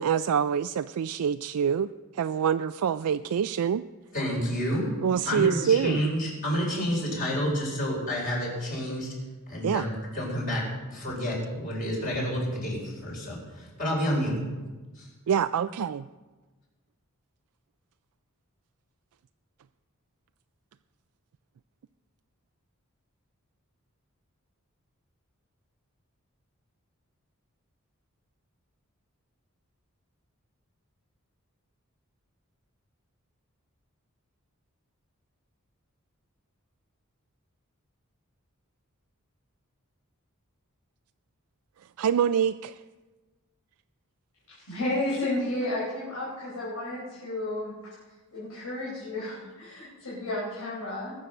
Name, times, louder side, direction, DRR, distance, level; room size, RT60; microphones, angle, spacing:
voice 1, 0.0-3.8 5.0-6.0 9.6-9.8 15.3-16.1 42.0-42.8, right 8 dB, 90° right, 10 dB, 0.4 m, -26 dB
voice 2, 4.1-4.9 5.2-9.1 9.5-14.4 15.0-15.1, equal, 40° left, -2 dB, 4.6 m, -29 dB
voice 3, 44.6-47.9 48.3-51.1, left 1 dB, 80° left, -8 dB, 5.0 m, -32 dB
21.0 x 7.5 x 6.6 m, 1.2 s
head